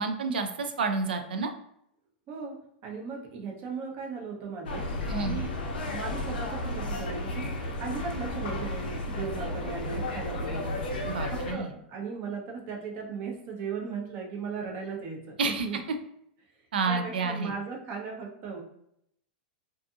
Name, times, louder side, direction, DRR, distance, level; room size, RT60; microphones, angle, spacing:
voice 1, 0.0-1.5 5.1-5.4 11.1-11.7 15.4-15.7 16.7-17.5, right 4 dB, 80° right, 6 dB, 0.4 m, -29 dB
voice 2, 2.8-4.9 5.2-5.5 5.8-7.5 7.8-10.8 11.5-15.8 16.9-18.6, right 5 dB, 45° right, 0 dB, 0.7 m, -37 dB
sound 1, 4.6-11.5, left 2 dB, 75° left, 0.5 m, -33 dB
2.6 x 2.5 x 2.3 m, 0.73 s
hypercardioid pair, 110°, 5 cm